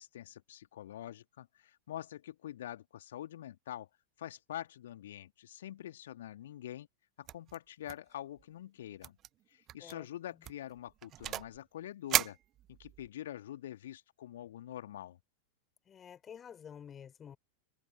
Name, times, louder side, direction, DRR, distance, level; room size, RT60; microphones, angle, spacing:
voice 1, 0.0-3.9 4.2-6.9 7.2-9.2 9.5-12.4 12.7-15.2, left 12 dB, 60° left, 2.8 m, -45 dB
sound 1, 7.3-7.6 7.9-8.1 8.4-8.5 9.0-9.3 9.7-9.9 10.4-11.6 12.1-13.1, right 12 dB, 30° right, 0.7 m, -35 dB
voice 2, 15.9-17.4, left 8 dB, 25° left, 4.2 m, -50 dB
figure-of-eight pair, 90°, 0 cm